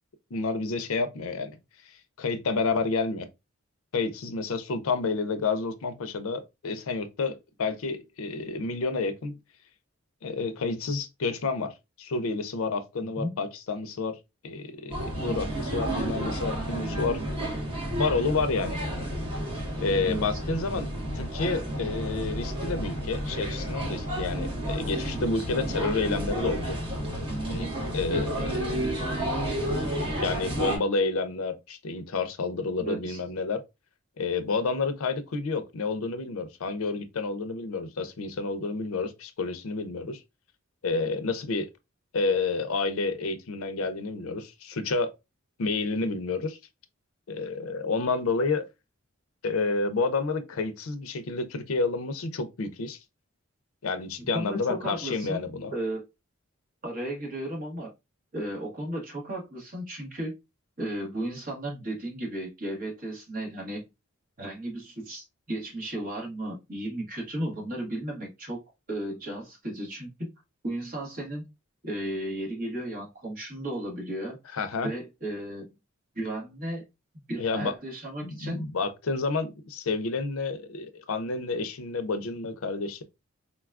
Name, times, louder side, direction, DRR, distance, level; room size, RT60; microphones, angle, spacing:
voice 1, 0.3-1.6 1.9-3.3 3.9-9.4 10.2-14.2 14.4-17.2 18.0-18.8 19.8-20.9 21.1-26.8 27.5-29.2 29.7-33.6 34.2-40.2 40.8-41.7 42.1-45.1 45.6-46.6 47.3-48.6 49.4-53.0 53.8-55.7 74.5-74.9 77.4-77.7 78.2-83.0, left 3 dB, 80° left, 0.5 m, -30 dB
voice 2, 13.0-13.3 20.1-20.2 32.8-33.2 54.2-56.0 56.8-57.9 58.3-60.3 60.8-63.9 64.4-68.6 68.9-70.3 70.6-71.4 71.8-75.8 76.1-76.8 77.3-78.6, right 1 dB, 45° right, 1.3 m, -34 dB
sound 1, 14.9-30.8, right 1 dB, 25° right, 1.0 m, -31 dB
3.8 x 2.3 x 2.3 m
head